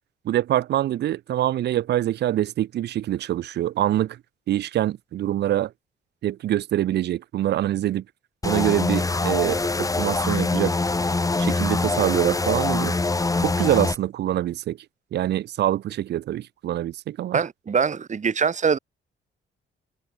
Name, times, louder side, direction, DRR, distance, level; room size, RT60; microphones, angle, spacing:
voice 1, 0.2-4.2 4.5-5.7 6.2-8.0 8.4-10.7 11.4-13.0 13.4-14.8 15.1-17.4, right 13 dB, 60° right, 0.5 m, -25 dB
sound 1, 8.4-14.0, left 3 dB, 15° left, 1.2 m, -24 dB
voice 2, 17.3-18.8, right 6 dB, 35° right, 1.6 m, -23 dB
cardioid pair, 90°, 20 cm